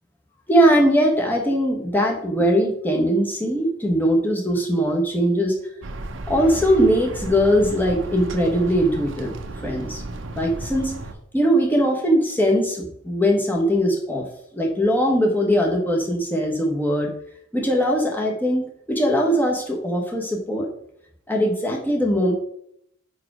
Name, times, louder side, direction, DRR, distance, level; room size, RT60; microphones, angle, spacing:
voice 1, 0.5-5.5 6.3-9.3 9.6-10.0 10.4-10.9 11.3-14.3 14.5-17.1 17.5-20.7 21.3-22.3, equal, 10° left, 0 dB, 1.2 m, -20 dB
sound 1, 5.8-11.1, right 2 dB, 60° right, 0.7 m, -34 dB
5.0 x 4.7 x 6.0 m, 0.71 s
head